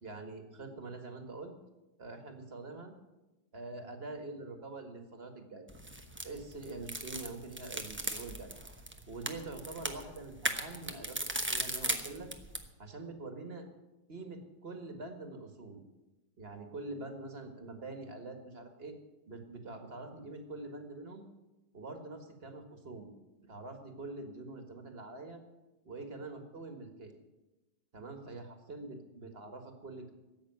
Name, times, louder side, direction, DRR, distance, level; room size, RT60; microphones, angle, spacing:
voice 1, 0.0-1.5 2.0-2.9 3.5-5.7 6.2-8.5 9.1-11.2 11.5-12.3 12.8-13.7 14.1-15.8 16.4-19.0 19.3-21.3 21.7-23.1 23.4-25.4 25.8-27.2 27.9-30.1, right 2 dB, 35° right, 6 dB, 1.8 m, -45 dB
sound 1, 5.7-12.7, right 1 dB, 10° right, 0.6 m, -38 dB
13.5 x 8.6 x 9.3 m, 1.1 s
omnidirectional pair, 2.0 m